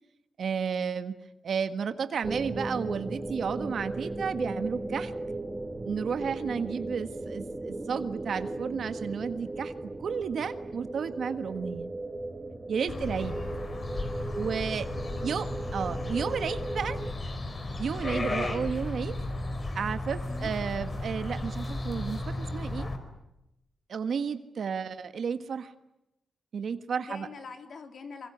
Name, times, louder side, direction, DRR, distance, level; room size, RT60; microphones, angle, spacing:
voice 1, 0.4-1.1 1.4-5.1 5.8-9.7 10.0-11.9 12.7-13.4 14.3-14.9 15.2-15.5 15.7-17.0 17.8-19.2 19.7-22.9 23.9-25.7 26.5-27.3, right 6 dB, 65° right, 10 dB, 1.5 m, -32 dB
sound 1, 2.2-17.1, right 2 dB, 20° right, 1.8 m, -37 dB
voice 2, 12.8-13.2 15.0-15.6 20.3-20.5 27.0-28.3, left 4 dB, 55° left, 6 dB, 3.6 m, -45 dB
sound 2, 12.9-23.0, left 2 dB, 35° left, 4.7 m, -34 dB
26.0 x 23.0 x 9.9 m, 0.89 s
cardioid pair, 105°, 0 cm